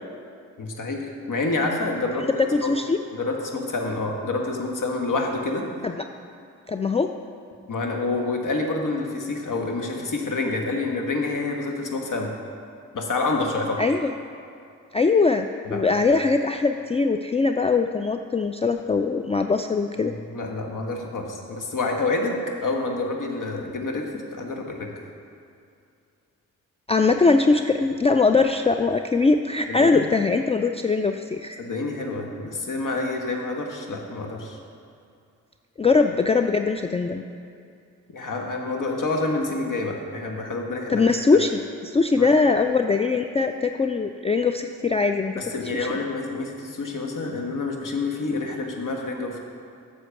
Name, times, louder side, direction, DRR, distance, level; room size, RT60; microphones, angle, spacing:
voice 1, 0.6-2.7 3.1-5.7 7.7-12.3 12.9-13.8 15.7-15.8 20.0-24.9 29.7-30.1 31.6-34.6 38.1-41.0 42.2-42.3 45.3-49.4, left 3 dB, 50° left, 2 dB, 1.5 m, -28 dB
voice 2, 2.5-3.0 5.8-5.9 6.7-7.1 13.8-14.1 14.9-20.1 26.9-31.6 35.8-37.2 40.9-45.3, left 4 dB, 15° left, 6 dB, 0.4 m, -21 dB
8.1 x 6.4 x 5.9 m, 2.5 s
hypercardioid pair, 40°, 39 cm